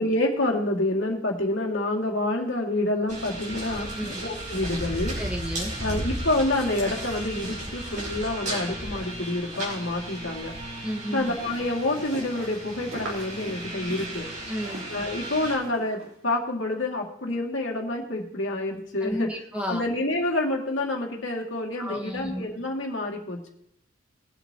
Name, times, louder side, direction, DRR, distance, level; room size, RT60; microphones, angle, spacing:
voice 1, 0.0-5.2 5.8-10.5 11.1-14.3 14.9-19.3 19.7-23.5, left 2 dB, 65° left, 0 dB, 2.3 m, -28 dB
sound 1, 3.1-15.6, right 1 dB, 40° right, 5.2 m, -35 dB
voice 2, 5.2-5.7 10.8-11.3 14.5-14.8 19.0-19.8 21.8-22.5, equal, 5° right, 0 dB, 1.5 m, -32 dB
sound 2, 11.2-16.2, right 1 dB, 80° right, 3.5 m, -42 dB
21.0 x 8.2 x 2.9 m, 0.77 s
head